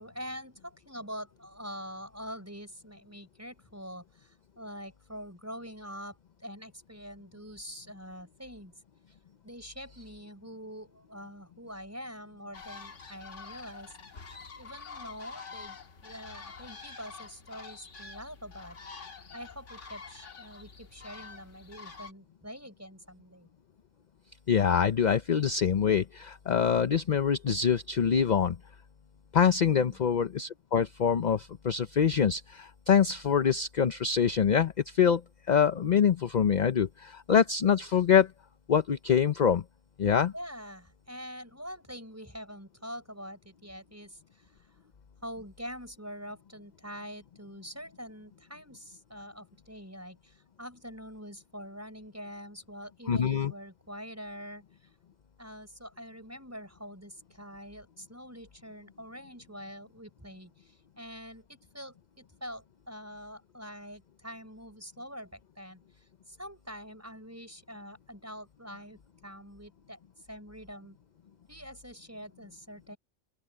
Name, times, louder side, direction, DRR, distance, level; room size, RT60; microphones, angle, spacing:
voice 1, 0.0-8.7 9.4-14.2 14.6-15.8 16.0-18.8 19.3-23.5 29.6-30.0 40.3-44.7 45.2-54.6 55.4-70.0 70.3-71.0 71.5-73.0, equal, 10° right, 5.7 m, -45 dB
sound 1, 12.5-22.1, left 4 dB, 80° left, 2.0 m, -47 dB
voice 2, 24.5-28.6 29.3-35.2 35.5-38.3 38.7-39.6 40.0-40.3 53.1-53.5, left 7 dB, 45° left, 0.7 m, -25 dB
open air
omnidirectional pair, 1.2 m